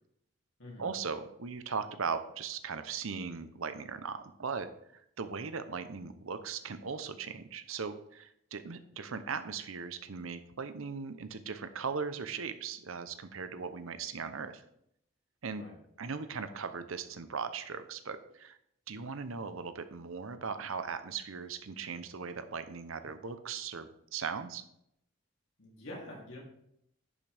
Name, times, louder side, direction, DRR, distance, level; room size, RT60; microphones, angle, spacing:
voice 1, 0.8-14.6 15.4-15.6 16.0-18.6 18.9-24.6, right 5 dB, 75° right, 10 dB, 0.7 m, -38 dB
voice 2, 25.6-26.4, left 1 dB, 60° left, -3 dB, 3.1 m, -46 dB
10.5 x 6.0 x 3.4 m, 0.75 s
head